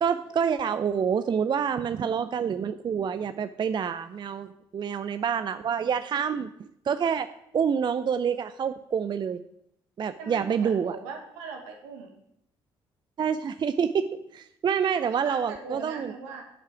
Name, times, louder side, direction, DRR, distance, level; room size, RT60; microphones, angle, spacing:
voice 1, 0.0-6.5 6.9-7.3 7.5-9.4 10.0-11.0 13.2-16.1, right 7 dB, 35° right, 12 dB, 0.4 m, -27 dB
voice 2, 10.2-12.1 14.9-16.4, right 5 dB, 75° right, 2 dB, 1.5 m, -40 dB
8.4 x 5.5 x 6.1 m, 0.77 s
figure-of-eight pair, 45°, 13 cm